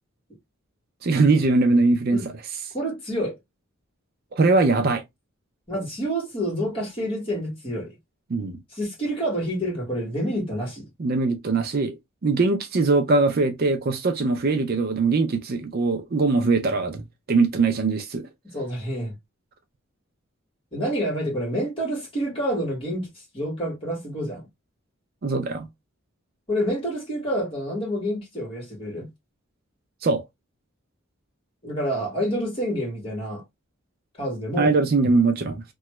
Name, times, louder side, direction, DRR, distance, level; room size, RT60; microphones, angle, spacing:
voice 1, 1.0-2.2 4.3-5.0 8.3-8.6 11.0-11.9 12.2-17.0 17.3-18.3 25.2-25.7 30.0-30.2 34.6-35.6, right 3 dB, 45° right, 0.4 m, -21 dB
voice 2, 2.7-3.4 5.7-7.9 8.7-10.9 18.5-19.1 20.7-23.1 23.3-24.4 26.5-29.1 31.6-33.4 34.2-34.7, equal, 25° left, 1.6 m, -28 dB
2.9 x 2.3 x 2.9 m
head